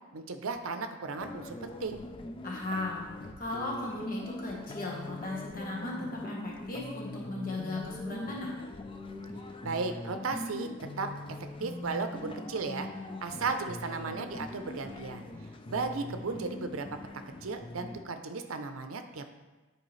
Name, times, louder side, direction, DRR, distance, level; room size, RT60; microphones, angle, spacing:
voice 1, 0.1-2.0 9.6-10.7 11.0-11.1 11.6-12.9 13.2-15.3 15.7-17.0 17.4-19.3, right 4 dB, 70° right, 7 dB, 0.6 m, -35 dB
sound 1, 1.2-18.0, left 1 dB, 25° left, 0.4 m, -42 dB
voice 2, 2.4-3.1 3.4-8.5, left 2 dB, 40° left, -3 dB, 1.4 m, -36 dB
10.0 x 4.6 x 3.2 m, 1.2 s
head